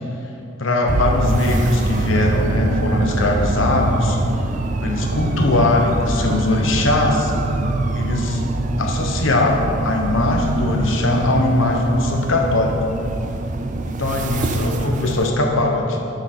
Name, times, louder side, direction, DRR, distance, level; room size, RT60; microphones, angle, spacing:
voice 1, 0.6-4.2 4.8-7.3 7.9-8.4 8.8-12.8 13.8-16.0, left 2 dB, 65° left, 1 dB, 1.1 m, -20 dB
sound 1, 0.9-15.3, right 2 dB, 40° right, 0.4 m, -24 dB
9.3 x 6.7 x 4.4 m, 2.7 s
head